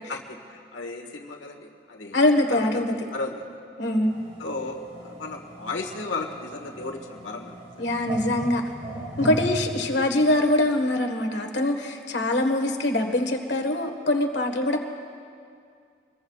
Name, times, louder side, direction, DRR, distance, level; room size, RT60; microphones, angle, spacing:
voice 1, 0.1-2.2 2.5-2.8 3.1-3.4 4.4-7.6, left 3 dB, 85° left, 3 dB, 1.6 m, -34 dB
voice 2, 2.1-2.9 3.8-4.2 7.8-8.6 9.2-14.8, left 1 dB, 70° left, 4 dB, 1.5 m, -23 dB
sound 1, 4.0-9.8, right 1 dB, 35° right, 2.0 m, -37 dB
26.5 x 21.5 x 2.4 m, 2.3 s
head